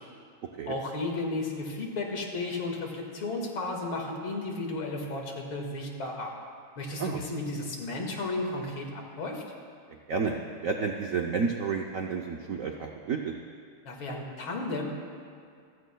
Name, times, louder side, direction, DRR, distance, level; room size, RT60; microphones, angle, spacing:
voice 1, 0.7-6.3 6.8-9.4 13.8-14.8, left 2 dB, 70° left, 0 dB, 2.7 m, -33 dB
voice 2, 9.9-13.3, right 5 dB, 75° right, 2 dB, 0.7 m, -31 dB
26.0 x 15.5 x 2.3 m, 2.3 s
omnidirectional pair, 2.4 m